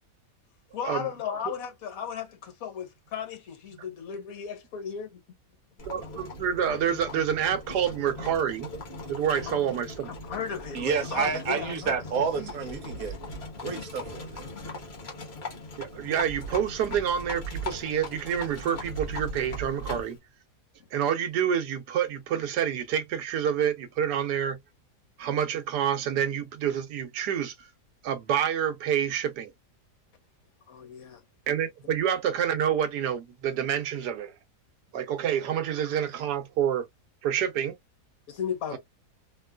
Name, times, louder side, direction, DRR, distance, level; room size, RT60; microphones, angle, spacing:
voice 1, 0.7-5.1 9.5-9.7 10.1-12.0 30.7-31.2 38.3-38.8, left 7 dB, 60° left, 1.4 m, -35 dB
Livestock farm animals working animals, 5.8-20.2, left 1 dB, 45° left, 1.3 m, -39 dB
voice 2, 5.9-8.7 9.1-10.1 12.4-12.5 15.8-20.2 20.9-24.6 25.2-27.7 28.0-29.5 31.5-34.3 34.9-36.9 37.2-37.8 38.7-38.8, right 9 dB, 85° right, 1.3 m, -28 dB
voice 3, 10.7-13.2 13.6-14.4, right 6 dB, 65° right, 1.1 m, -29 dB
3.1 x 2.9 x 2.2 m
omnidirectional pair, 1.7 m